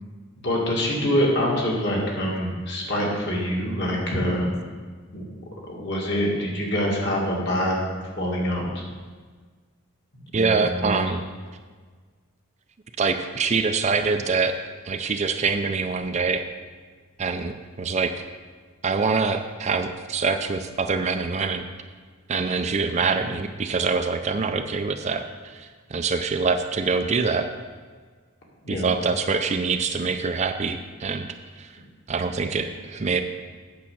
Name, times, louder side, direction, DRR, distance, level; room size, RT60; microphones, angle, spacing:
voice 1, 0.4-4.5 5.1-5.3 5.7-7.8 8.2-8.8 10.1-11.0 23.1-23.2 28.6-28.9, equal, 50° left, -3 dB, 2.1 m, -25 dB
voice 2, 10.3-11.2 13.0-14.5 14.8-16.5 17.2-18.1 18.8-21.7 22.3-27.5 28.7-31.3 31.6-31.7 32.1-33.2, right 4 dB, 30° right, 7 dB, 0.4 m, -25 dB
8.6 x 5.5 x 7.2 m, 1.5 s
head